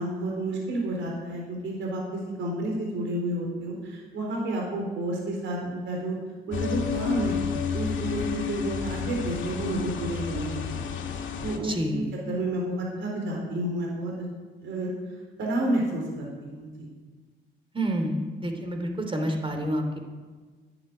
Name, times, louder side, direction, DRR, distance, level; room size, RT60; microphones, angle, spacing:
voice 1, 0.0-6.2 6.5-7.4 7.7-14.3 14.6-14.9 15.4-16.9, right 1 dB, 75° right, -1 dB, 4.1 m, -30 dB
sound 1, 6.5-11.6, left 6 dB, 75° left, 2.0 m, -31 dB
voice 2, 11.6-12.1 17.7-20.0, right 1 dB, 25° right, 4 dB, 3.4 m, -29 dB
11.5 x 10.5 x 9.3 m, 1.4 s
cardioid pair, 90°, 20 cm